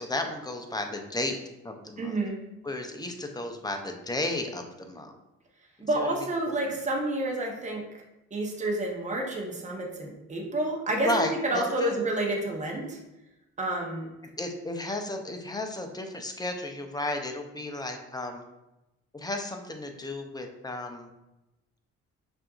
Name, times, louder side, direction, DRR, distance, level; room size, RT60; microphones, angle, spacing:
voice 1, 0.0-1.4 1.6-2.2 2.6-5.1 5.9-6.8 11.0-12.0 14.4-18.4 19.1-21.1, left 1 dB, 15° left, 4 dB, 0.5 m, -33 dB
voice 2, 2.0-2.4 5.8-7.8 8.3-11.2 11.5-13.0 13.6-14.1, right 1 dB, 25° right, 0 dB, 0.8 m, -29 dB
5.6 x 2.6 x 2.4 m, 0.96 s
cardioid pair, 90°, 30 cm